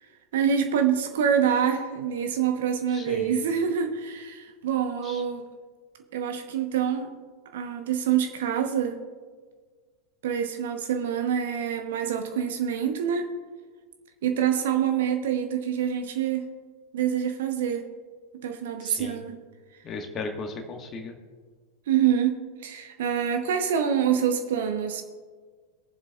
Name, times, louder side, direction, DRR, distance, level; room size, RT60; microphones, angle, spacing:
voice 1, 0.3-5.4 6.1-7.1 7.5-9.0 10.2-13.3 14.2-16.5 16.9-17.8 18.4-19.3 21.9-25.0, right 8 dB, 55° right, 6 dB, 1.0 m, -26 dB
voice 2, 2.9-3.4 5.0-5.2 18.8-19.2 19.8-21.1, left 3 dB, 25° left, 4 dB, 1.5 m, -36 dB
22.5 x 7.6 x 2.4 m, 1.5 s
figure-of-eight pair, 90°, 0 cm